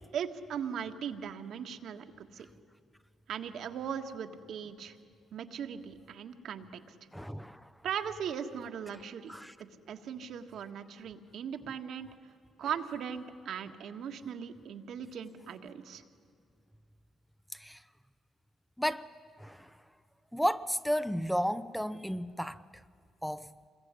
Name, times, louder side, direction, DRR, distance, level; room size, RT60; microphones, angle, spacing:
voice 1, 0.1-2.1 2.3-2.5 3.3-5.0 5.3-6.7 7.8-9.3 9.9-12.1 12.6-16.0, right 8 dB, 70° right, 1.6 m, -38 dB
voice 2, 7.1-7.7 9.3-9.5 17.5-17.8 18.8-19.1 19.4-19.7 20.3-22.6 23.2-23.5, equal, ahead, 0.7 m, -33 dB
26.5 x 21.5 x 9.7 m
cardioid pair, 90°, 0 cm